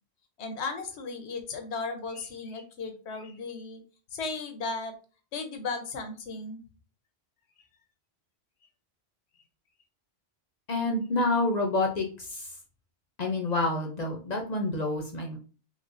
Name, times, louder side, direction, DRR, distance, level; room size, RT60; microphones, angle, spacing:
voice 1, 0.4-3.8 4.1-4.9 5.3-6.6, left 4 dB, 90° left, 6 dB, 1.0 m, -35 dB
voice 2, 10.7-12.5 13.2-15.4, left 2 dB, 50° left, 2 dB, 0.6 m, -28 dB
4.6 x 2.1 x 2.5 m, 0.37 s
omnidirectional pair, 1.1 m